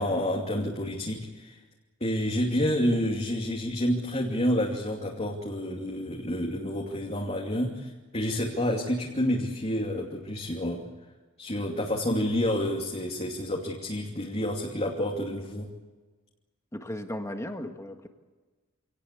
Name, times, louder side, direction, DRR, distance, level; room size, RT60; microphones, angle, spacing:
voice 1, 0.0-1.6 2.0-10.9 11.4-15.7, equal, 30° left, 0 dB, 2.7 m, -29 dB
voice 2, 16.7-18.1, left 1 dB, 15° left, 5 dB, 1.7 m, -36 dB
26.5 x 18.5 x 8.4 m, 1.3 s
head